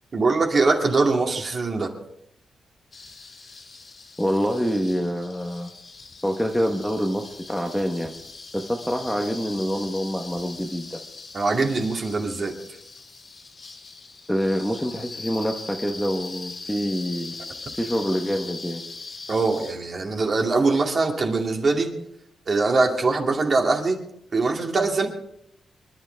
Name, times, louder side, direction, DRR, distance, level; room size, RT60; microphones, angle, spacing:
voice 1, 0.1-1.9 11.3-12.5 19.3-21.9 22.5-24.0 24.3-25.1, right 3 dB, 40° right, 1 dB, 2.5 m, -22 dB
sound 1, 2.9-19.7, left 3 dB, 35° left, 2.5 m, -41 dB
voice 2, 4.2-5.7 6.2-8.1 8.5-11.0 14.3-17.4 17.8-18.8, equal, 5° left, 3 dB, 1.2 m, -26 dB
25.5 x 11.5 x 3.5 m, 0.73 s
wide cardioid pair, 140°, 0 cm